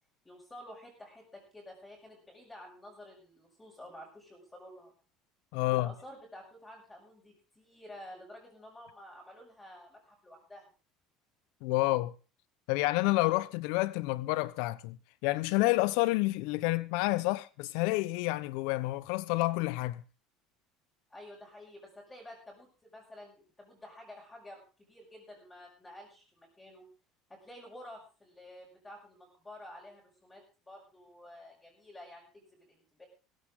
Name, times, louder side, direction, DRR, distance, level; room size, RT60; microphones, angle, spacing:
voice 1, 0.2-4.9 5.6-10.7 21.1-26.9 27.3-33.1, left 1 dB, 10° left, 6.0 m, -51 dB
voice 2, 5.5-5.9 11.6-12.1 12.7-15.0 15.2-20.0, left 20 dB, 75° left, 1.0 m, -29 dB
16.5 x 15.0 x 3.8 m
cardioid pair, 145°, 0 cm